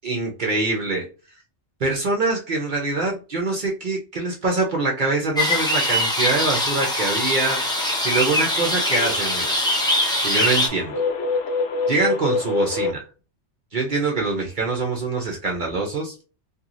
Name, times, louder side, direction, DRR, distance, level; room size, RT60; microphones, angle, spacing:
voice 1, 0.0-1.1 1.8-9.6 10.2-11.0 11.9-13.0 13.7-16.1, right 3 dB, 50° right, 0 dB, 0.8 m, -24 dB
sound 1, 5.3-10.7, left 1 dB, 5° left, 0.3 m, -22 dB
sound 2, 7.4-12.9, left 4 dB, 90° left, 0.9 m, -28 dB
2.8 x 2.7 x 2.5 m, 0.34 s
omnidirectional pair, 1.2 m